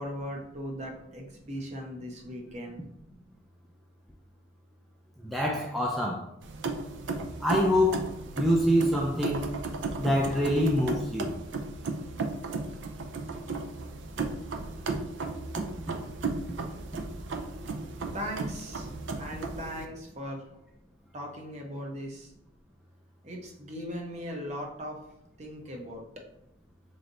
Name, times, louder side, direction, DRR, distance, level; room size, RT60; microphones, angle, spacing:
voice 1, 0.0-2.8 17.8-20.4 21.1-22.3 23.2-25.0 25.4-26.0, equal, 40° right, 1 dB, 0.7 m, -39 dB
voice 2, 5.2-6.2 7.4-8.1 8.3-9.5 10.0-11.3, equal, ahead, -2 dB, 0.3 m, -25 dB
sound 1, 6.4-19.9, right 3 dB, 80° right, 0.4 m, -35 dB
3.1 x 2.6 x 3.9 m, 0.80 s
head